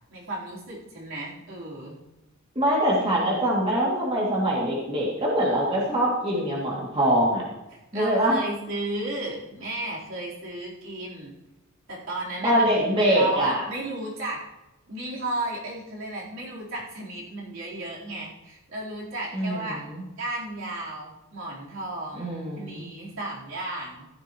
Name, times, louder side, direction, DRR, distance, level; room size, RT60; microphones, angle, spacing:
voice 1, 0.1-2.0 7.9-11.3 11.9-14.4 14.9-19.8 20.2-24.1, right 2 dB, 70° right, -5 dB, 4.0 m, -34 dB
voice 2, 2.5-7.4 7.9-8.4 12.4-13.6 19.3-20.0 22.1-22.9, equal, 30° right, -5 dB, 2.6 m, -23 dB
15.0 x 11.5 x 3.1 m, 0.95 s
head